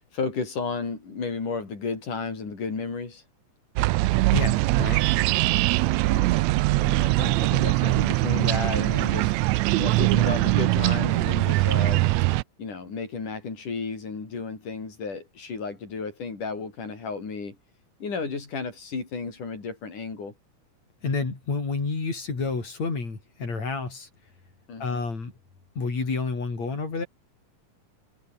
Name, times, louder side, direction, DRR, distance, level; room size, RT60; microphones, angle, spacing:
voice 1, 0.0-3.2 6.0-12.1 12.6-17.6 18.0-20.3 24.7-25.0, left 4 dB, 90° left, 7.3 m, -33 dB
sound 1, 3.8-12.4, right 20 dB, 80° right, 1.7 m, -22 dB
voice 2, 4.3-5.0 21.0-24.1 24.8-25.3 25.7-27.1, left 4 dB, 60° left, 6.8 m, -29 dB
omnidirectional pair, 3.5 m